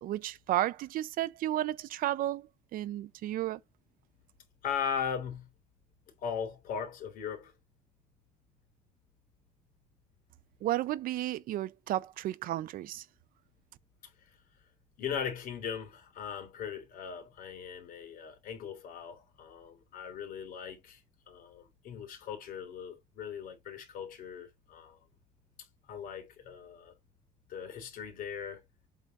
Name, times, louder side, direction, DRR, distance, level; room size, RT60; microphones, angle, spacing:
voice 1, 0.0-3.6 10.6-13.1, right 14 dB, 70° right, 0.6 m, -33 dB
voice 2, 4.6-5.5 6.2-7.5 14.2-14.3 15.0-21.0 21.3-25.0 25.9-26.9 27.5-28.6, left 7 dB, 70° left, 3.3 m, -39 dB
8.1 x 3.9 x 5.3 m
cardioid pair, 145°, 15 cm